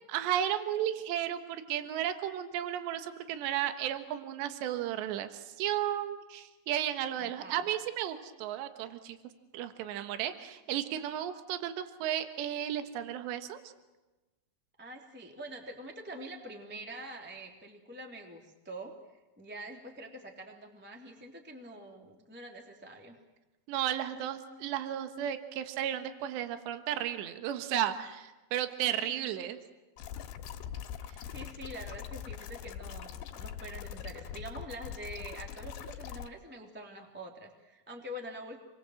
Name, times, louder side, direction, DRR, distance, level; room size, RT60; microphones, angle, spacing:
voice 1, 0.1-9.2 9.5-13.6 23.7-29.6, right 11 dB, 75° right, 8 dB, 3.5 m, -34 dB
voice 2, 7.2-7.7 14.8-18.9 19.4-23.2 28.8-29.3 31.3-38.6, right 1 dB, 5° right, 2 dB, 1.8 m, -45 dB
sound 1, 30.0-36.3, left 9 dB, 85° left, 3.9 m, -42 dB
29.0 x 22.0 x 7.8 m, 1.1 s
omnidirectional pair, 5.2 m